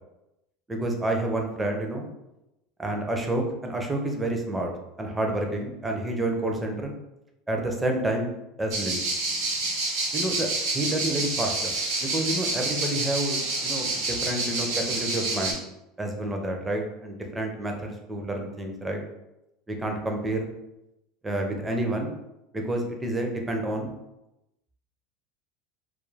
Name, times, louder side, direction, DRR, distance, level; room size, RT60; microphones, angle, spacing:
voice 1, 0.7-2.1 2.8-4.7 5.0-6.9 7.5-8.3 8.6-9.0 10.1-10.5 10.7-11.7 12.0-15.6 16.0-19.0 19.7-20.5 21.2-22.1 22.5-23.9, right 1 dB, 10° right, 2 dB, 0.4 m, -29 dB
sound 1, 8.7-15.5, right 2 dB, 80° right, 0.8 m, -28 dB
2.3 x 2.2 x 3.1 m, 0.92 s
supercardioid pair, 140°, 0 cm